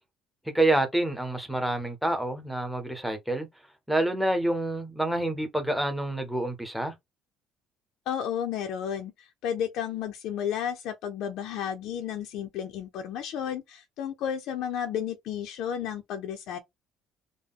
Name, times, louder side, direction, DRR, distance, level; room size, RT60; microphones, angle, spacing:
voice 1, 0.5-3.5 3.9-6.9, right 1 dB, ahead, 0.7 m, -27 dB
voice 2, 8.1-16.6, left 9 dB, 65° left, 0.6 m, -32 dB
3.6 x 2.1 x 3.6 m
cardioid pair, 170°, 0 cm